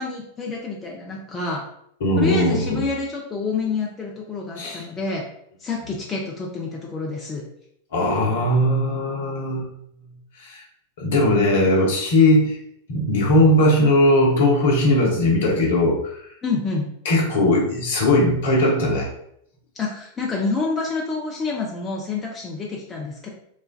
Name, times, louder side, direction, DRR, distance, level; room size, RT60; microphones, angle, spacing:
voice 1, 0.0-1.6 2.2-5.2 5.6-7.4 16.4-16.9 19.7-23.3, left 4 dB, 20° left, -1 dB, 0.5 m, -27 dB
voice 2, 2.0-2.8 4.6-4.8 7.9-9.7 10.4-10.6 11.0-12.6 12.9-16.2 17.0-19.1, left 1 dB, 55° left, -2 dB, 0.8 m, -19 dB
3.1 x 2.2 x 2.3 m, 0.72 s
figure-of-eight pair, 90°, 0 cm